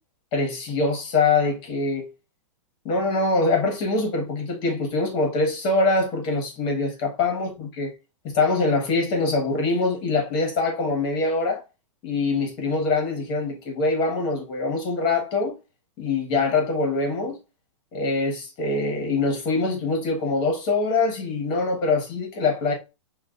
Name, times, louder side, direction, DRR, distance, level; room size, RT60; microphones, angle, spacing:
voice 1, 0.3-2.1 2.8-7.9 8.2-11.6 12.0-15.5 16.0-17.4 17.9-22.7, left 3 dB, 30° left, 1.3 m, -24 dB
5.9 x 2.5 x 2.4 m
supercardioid pair, 165°, 17 cm